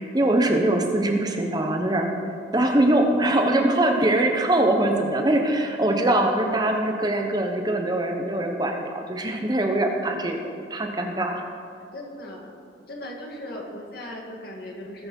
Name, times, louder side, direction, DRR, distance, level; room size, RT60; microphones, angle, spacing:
voice 1, 0.1-2.1 2.5-10.4 10.7-11.4, right 1 dB, 20° right, 3 dB, 0.9 m, -22 dB
voice 2, 10.8-11.2 11.9-12.5 12.9-15.1, left 1 dB, 55° left, 0 dB, 1.9 m, -38 dB
20.0 x 6.8 x 5.4 m, 2.3 s
head